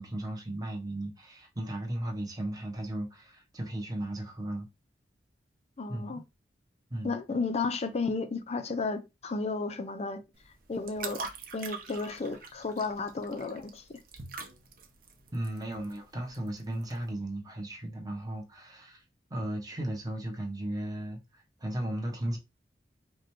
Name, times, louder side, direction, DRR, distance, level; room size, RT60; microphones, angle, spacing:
voice 1, 0.0-4.7 5.9-6.2 6.9-7.2 15.3-19.0 19.3-22.4, right 1 dB, 20° right, 0.9 m, -36 dB
voice 2, 5.8-6.2 7.0-10.2 10.7-11.2 11.5-14.0, left 4 dB, 40° left, 0.5 m, -33 dB
sound 1, 10.3-17.1, right 4 dB, 55° right, 0.7 m, -44 dB
4.9 x 2.1 x 3.0 m
head